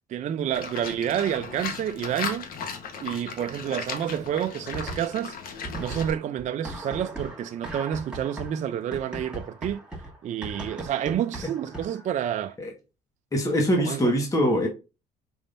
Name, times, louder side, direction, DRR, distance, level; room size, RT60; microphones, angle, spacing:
voice 1, 0.1-2.5 3.0-5.4 5.8-9.8 10.2-12.6 13.8-14.1, right 10 dB, 45° right, 0.4 m, -29 dB
Livestock farm animals working animals, 0.5-6.1, left 6 dB, 60° left, 1.1 m, -36 dB
sound 1, 4.7-5.3 5.6-12.1, right 2 dB, 5° right, 1.7 m, -38 dB
voice 2, 13.3-14.7, equal, 20° left, 1.4 m, -23 dB
5.1 x 3.6 x 2.5 m
cardioid pair, 110°, 17 cm